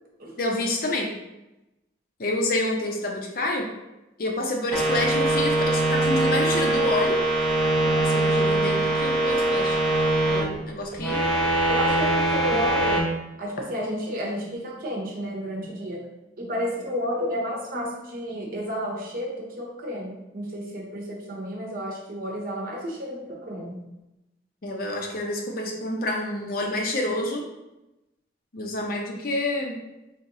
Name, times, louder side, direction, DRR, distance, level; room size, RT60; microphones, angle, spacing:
voice 1, 0.4-1.1 2.2-3.7 4.2-7.2 7.8-9.8 10.3-11.3 12.5-12.6 24.6-27.5 28.5-29.8, left 1 dB, 50° left, 1 dB, 0.6 m, -28 dB
sound 1, 4.7-10.4 10.9-13.0, right 1 dB, 5° left, 0.5 m, -22 dB
voice 2, 11.7-13.0 13.4-16.1 16.4-23.9, equal, 50° right, -2 dB, 0.8 m, -31 dB
4.1 x 2.9 x 2.6 m, 0.96 s
head